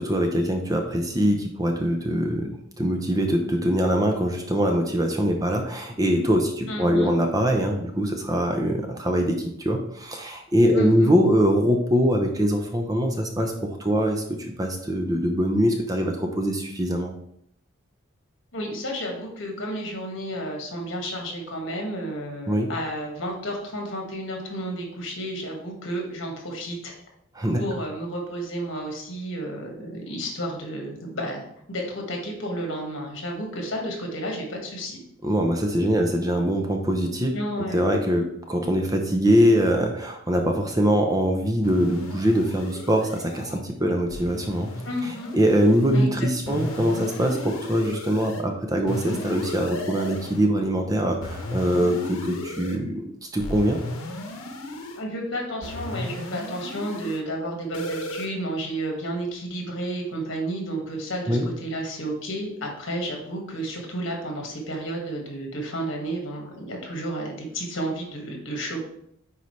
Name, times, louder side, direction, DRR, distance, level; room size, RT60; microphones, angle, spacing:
voice 1, 0.0-17.1 22.5-22.7 27.3-27.6 35.2-37.3 37.7-44.7 45.3-53.0 53.3-53.8 61.3-61.5, equal, 15° right, 3 dB, 0.6 m, -23 dB
voice 2, 6.7-7.1 10.7-11.1 18.5-26.9 27.6-35.0 37.3-37.8 44.8-45.4 45.9-46.1 46.4-46.6 54.9-68.8, right 1 dB, 60° left, 0 dB, 1.7 m, -31 dB
sound 1, 41.6-43.6 44.1-46.1 46.5-48.4 48.9-50.4 51.2-52.8 53.4-55.0 55.6-57.2 57.7-58.3, left 1 dB, 80° left, 1.0 m, -35 dB
9.3 x 4.0 x 3.2 m, 0.72 s
head